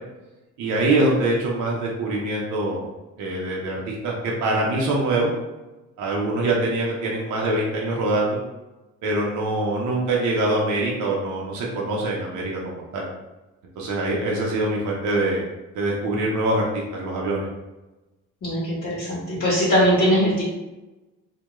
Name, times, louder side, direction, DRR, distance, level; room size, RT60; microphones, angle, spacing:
voice 1, 0.6-2.8 3.2-5.3 6.0-8.4 9.0-13.1 13.8-15.5 15.7-17.5, right 2 dB, 75° right, -3 dB, 0.6 m, -24 dB
voice 2, 18.4-20.4, equal, 50° left, -9 dB, 0.9 m, -20 dB
2.2 x 2.2 x 2.9 m, 1.1 s
cardioid pair, 90°, 30 cm